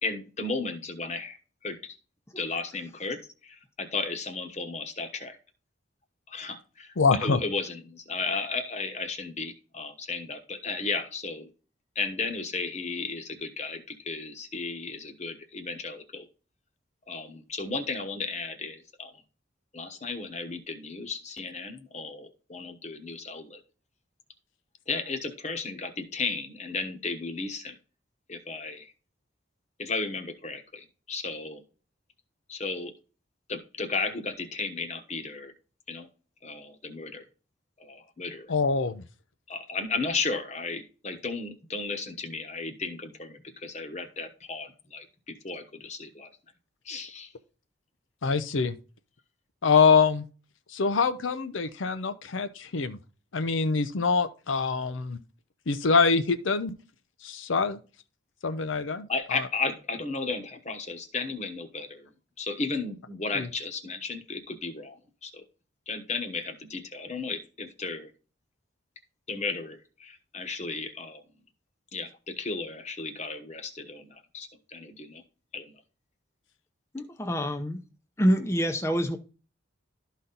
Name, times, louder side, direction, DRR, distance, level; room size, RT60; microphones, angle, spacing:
voice 1, 0.0-1.4 1.6-2.0 2.4-5.4 6.3-11.5 11.9-16.3 17.1-19.2 19.7-23.6 24.9-27.8 28.3-28.9 29.8-31.6 32.5-32.9 33.5-35.5 35.9-36.1 36.4-37.2 37.8-38.5 39.5-46.3 46.8-47.3 59.1-65.5 65.9-68.1 69.3-71.2 71.9-75.2 75.5-75.8, left 4 dB, 35° left, 1.1 m, -34 dB
voice 2, 7.0-7.4 38.5-39.0 48.2-48.8 49.6-50.2 50.7-53.0 53.3-55.2 55.7-56.7 57.2-57.8 58.4-59.4 63.4-63.5, left 5 dB, 80° left, 0.6 m, -24 dB
voice 3, 76.9-77.8 78.2-79.2, equal, 15° left, 0.6 m, -26 dB
12.5 x 4.2 x 3.9 m
head